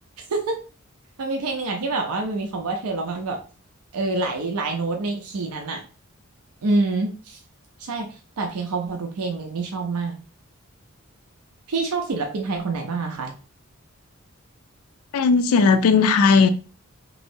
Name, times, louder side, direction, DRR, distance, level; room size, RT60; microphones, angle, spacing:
voice 1, 1.2-3.4 3.9-5.8 6.6-7.4 7.8-10.2 11.7-13.3, right 3 dB, 90° right, 0.5 m, -26 dB
voice 2, 15.1-16.5, left 5 dB, 80° left, 0.4 m, -16 dB
3.0 x 2.7 x 2.6 m
head